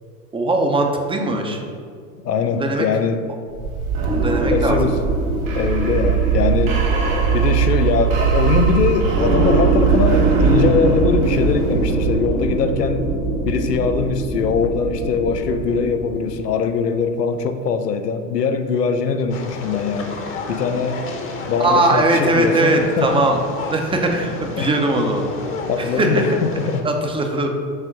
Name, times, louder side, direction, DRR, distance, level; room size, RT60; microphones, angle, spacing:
voice 1, 0.3-1.6 2.6-2.9 4.1-4.8 21.6-23.4 23.7-25.3 25.8-26.2 26.8-27.5, right 2 dB, 10° right, 3 dB, 0.6 m, -20 dB
voice 2, 2.2-3.2 4.5-5.0 5.5-6.9 7.3-13.1 13.5-20.2 20.5-21.0 21.5-23.2 24.6-24.7 25.7-26.8, left 5 dB, 85° left, 8 dB, 0.7 m, -21 dB
sound 1, 3.5-16.3, right 4 dB, 55° right, 1.7 m, -20 dB
sound 2, 19.3-26.8, left 3 dB, 25° left, 0.9 m, -31 dB
6.5 x 3.6 x 5.9 m, 2.1 s
hypercardioid pair, 90°, 47 cm